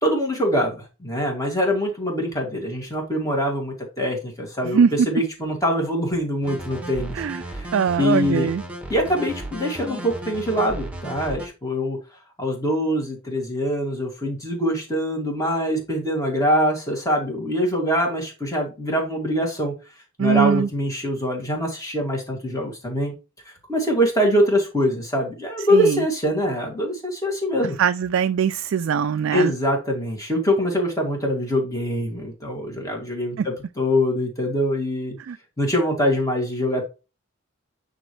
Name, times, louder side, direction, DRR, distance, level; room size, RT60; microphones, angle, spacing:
voice 1, 0.0-7.7 8.0-8.5 8.9-12.0 12.4-19.7 20.2-23.1 23.5-27.8 29.3-35.2 35.6-36.8, equal, 15° left, 2.2 m, -24 dB
voice 2, 4.6-5.1 7.1-7.4 7.7-8.6 20.2-20.7 25.7-26.0 27.8-29.5 33.4-33.5 35.3-35.4, right 7 dB, 55° right, 0.3 m, -21 dB
sound 1, 6.4-11.5, right 1 dB, 5° right, 1.4 m, -34 dB
8.9 x 4.1 x 3.2 m
head